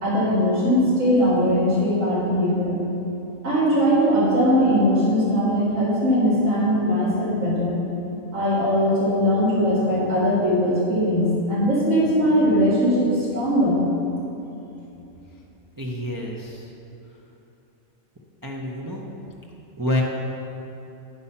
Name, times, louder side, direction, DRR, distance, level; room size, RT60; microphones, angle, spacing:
voice 1, 0.0-2.7 3.4-7.8 8.3-13.8, equal, 75° right, -9 dB, 2.7 m, -20 dB
voice 2, 15.8-16.6 18.4-19.1 19.8-20.0, left 1 dB, 25° right, -2 dB, 0.5 m, -27 dB
9.2 x 5.5 x 5.7 m, 2.9 s
omnidirectional pair, 1.3 m